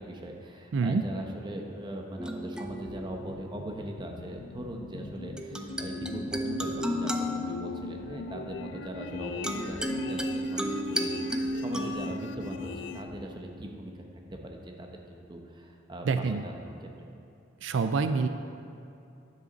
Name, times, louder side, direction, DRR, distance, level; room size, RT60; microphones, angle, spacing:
voice 1, 0.0-6.7 7.0-7.1 7.5-14.0 14.3-15.0 15.3-16.9, right 1 dB, 25° right, 2 dB, 0.8 m, -40 dB
voice 2, 0.7-1.0 16.1-16.4 17.6-18.3, right 4 dB, 80° right, 9 dB, 0.4 m, -26 dB
sound 1, 2.2-4.0 5.4-13.9, equal, 5° right, 0.4 m, -34 dB
sound 2, 2.6-13.0, left 4 dB, 80° left, 0.5 m, -41 dB
10.5 x 7.6 x 4.0 m, 2.6 s
head